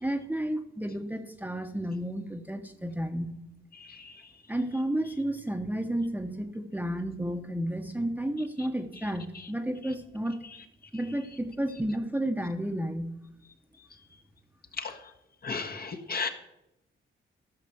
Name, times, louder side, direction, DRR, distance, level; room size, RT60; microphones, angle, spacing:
voice 1, 0.0-3.3 4.5-10.4 10.9-13.1, right 1 dB, 10° right, 6 dB, 1.0 m, -32 dB
voice 2, 3.7-4.1 14.8-15.0 15.4-16.3, left 4 dB, 45° left, 6 dB, 1.4 m, -34 dB
14.5 x 5.8 x 7.0 m, 0.86 s
cardioid pair, 100°, 21 cm